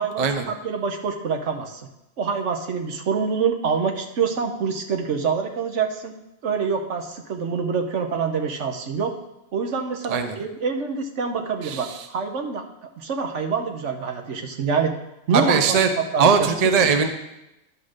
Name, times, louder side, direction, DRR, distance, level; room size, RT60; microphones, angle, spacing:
voice 1, 0.0-1.9 2.2-6.1 6.4-9.1 9.5-12.6 13.0-14.9 15.3-15.8 16.1-16.5 16.8-16.9, right 5 dB, 70° right, 5 dB, 1.2 m, -26 dB
voice 2, 11.6-12.0 15.3-15.9 16.2-17.1, right 6 dB, 40° right, 7 dB, 0.6 m, -19 dB
11.5 x 3.8 x 6.5 m, 0.89 s
omnidirectional pair, 1.3 m